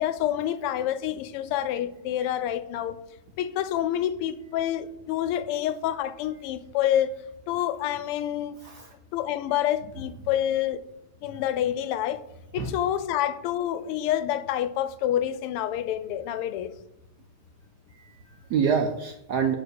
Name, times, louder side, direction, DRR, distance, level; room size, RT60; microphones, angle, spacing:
voice 1, 0.0-3.0 3.4-7.2 7.5-8.6 9.1-10.8 11.2-12.2 12.5-16.7, left 11 dB, 90° left, 1.5 m, -27 dB
voice 2, 17.9-19.5, right 6 dB, 75° right, 0.9 m, -27 dB
6.8 x 3.8 x 6.3 m
omnidirectional pair, 2.4 m